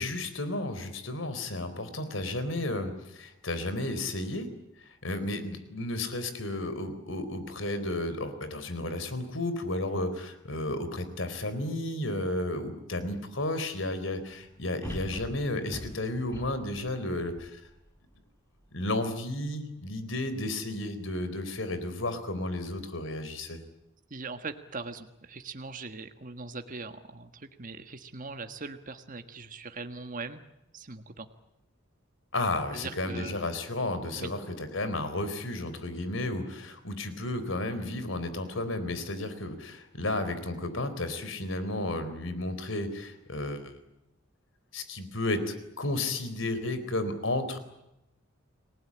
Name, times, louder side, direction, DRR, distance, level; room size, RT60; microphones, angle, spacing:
voice 1, 0.0-4.5 4.8-17.6 18.7-23.6 32.3-43.7 44.7-47.6, left 2 dB, 70° left, 11 dB, 4.0 m, -33 dB
sound 1, 14.8-18.1 18.6-18.7, equal, 10° left, 6.5 m, -42 dB
voice 2, 24.1-30.4 30.7-31.3 32.7-33.3 34.2-34.3, right 3 dB, 45° right, 8 dB, 1.5 m, -40 dB
30.0 x 20.0 x 8.8 m, 0.89 s
head